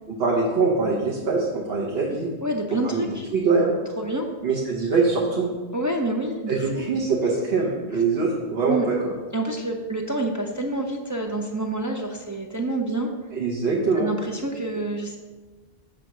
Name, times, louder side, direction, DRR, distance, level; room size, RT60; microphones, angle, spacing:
voice 1, 0.1-2.3 2.7-3.7 4.4-5.5 6.5-9.1 13.3-14.1, right 4 dB, 70° right, -3 dB, 1.2 m, -23 dB
voice 2, 2.4-3.3 4.0-4.3 5.7-6.7 8.7-8.8 9.3-13.1 14.0-15.2, right 2 dB, 30° right, 2 dB, 0.3 m, -27 dB
7.4 x 3.4 x 6.1 m, 1.3 s
omnidirectional pair, 1.0 m